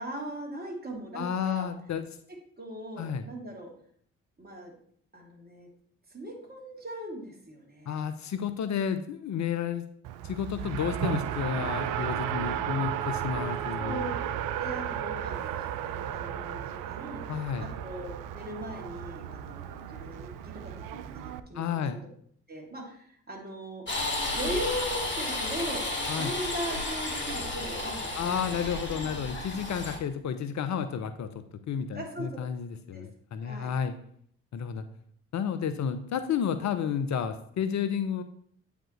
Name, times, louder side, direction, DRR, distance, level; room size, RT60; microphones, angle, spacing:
voice 1, 0.0-1.7 2.6-3.7 4.4-4.7 5.1-5.7 6.1-8.0 13.8-14.1 14.6-17.2 17.6-22.0 22.5-23.8 24.3-25.9 26.1-28.4 31.9-32.3 32.9-33.0 33.4-33.7, right 1 dB, 30° right, 0 dB, 2.8 m, -39 dB
voice 2, 1.1-2.1 3.0-3.2 7.9-9.8 10.2-14.1 17.3-17.7 21.5-22.0 26.1-26.3 28.2-33.9 34.5-34.8 35.3-38.2, left 7 dB, 55° left, 10 dB, 0.7 m, -31 dB
Race car auto racing, 10.0-21.4, right 10 dB, 70° right, 0.5 m, -34 dB
sound 1, 23.9-30.0, left 2 dB, 35° left, 2.1 m, -33 dB
8.6 x 5.1 x 3.2 m, 0.63 s
hypercardioid pair, 45°, 33 cm